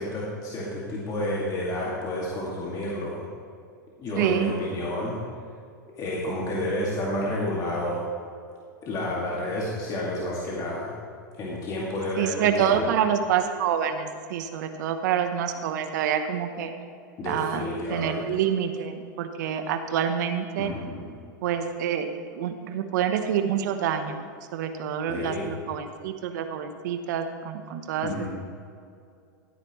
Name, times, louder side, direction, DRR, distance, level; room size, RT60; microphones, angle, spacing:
voice 1, 0.0-3.2 4.0-5.2 6.0-8.0 8.8-10.9 11.4-12.9 17.2-18.3 20.6-21.2 25.1-25.5 28.0-28.3, left 1 dB, 35° left, -5 dB, 2.2 m, -30 dB
voice 2, 4.2-4.5 12.2-16.7 17.2-17.6 17.9-20.7 21.4-22.1 22.3-24.2 24.5-28.1, right 8 dB, 65° right, 7 dB, 0.9 m, -27 dB
13.0 x 9.5 x 3.1 m, 2.4 s
hypercardioid pair, 110°, 10 cm